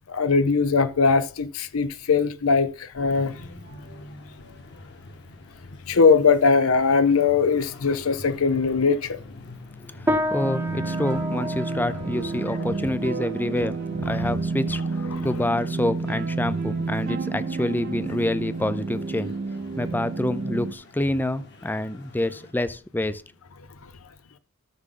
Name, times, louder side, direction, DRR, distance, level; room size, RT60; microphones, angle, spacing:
voice 1, 0.1-3.4 5.9-9.2 12.5-12.6 14.1-14.2 15.1-15.3 23.8-23.9, left 5 dB, 75° left, 0.6 m, -21 dB
sound 1, 3.1-22.5, left 2 dB, 55° left, 1.7 m, -45 dB
voice 2, 10.0-14.9 15.2-19.4 19.8-23.2, left 1 dB, 10° left, 0.4 m, -27 dB
sound 2, 10.1-19.7, left 1 dB, 10° right, 0.8 m, -34 dB
sound 3, 10.4-20.7, right 4 dB, 45° right, 0.6 m, -30 dB
13.5 x 6.2 x 3.8 m
head